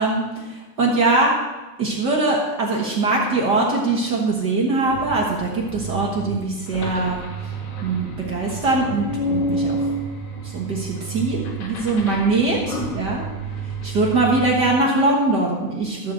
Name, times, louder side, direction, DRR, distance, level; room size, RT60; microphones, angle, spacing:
voice 1, 0.0-1.3 1.8-7.2 7.8-9.8 10.4-13.2 13.8-16.1, right 3 dB, 45° right, -2 dB, 1.4 m, -22 dB
sound 1, 4.8-14.7, right 2 dB, 75° left, 3.2 m, -30 dB
14.0 x 4.7 x 7.6 m, 1.1 s
omnidirectional pair, 3.7 m